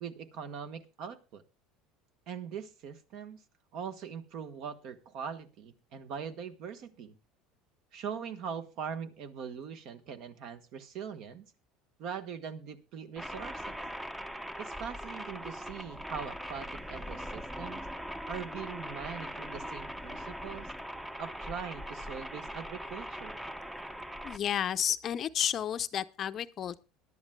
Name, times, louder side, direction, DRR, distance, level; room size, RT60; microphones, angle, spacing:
voice 1, 0.0-1.4 2.3-3.4 3.7-7.1 7.9-11.5 12.0-13.8 14.6-17.9 18.3-20.7 21.2-23.4, right 7 dB, 60° right, 1.3 m, -41 dB
sound 1, 13.2-24.4, equal, 5° right, 0.7 m, -41 dB
voice 2, 24.2-26.8, left 9 dB, 40° left, 0.6 m, -31 dB
22.0 x 11.0 x 2.3 m
supercardioid pair, 125°, 0 cm